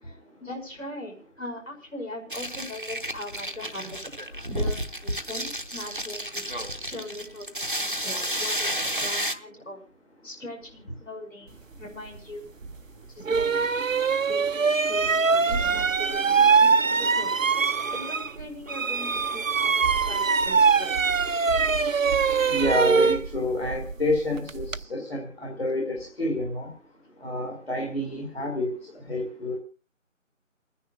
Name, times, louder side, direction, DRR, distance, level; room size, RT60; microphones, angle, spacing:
voice 1, 0.0-6.4 6.8-9.8 10.2-12.5 13.1-13.8 14.3-17.3 17.9-21.0, left 1 dB, 70° left, 2 dB, 5.2 m, -40 dB
sound 1, 2.3-9.3, right 1 dB, 40° right, 0.7 m, -31 dB
sound 2, 12.6-12.7 13.2-18.4 18.7-24.8, right 5 dB, 70° right, 0.7 m, -23 dB
voice 2, 22.5-26.7 27.2-29.6, left 1 dB, 45° left, 1 dB, 2.2 m, -29 dB
29.5 x 10.0 x 2.4 m, 0.34 s
figure-of-eight pair, 170°, 40 cm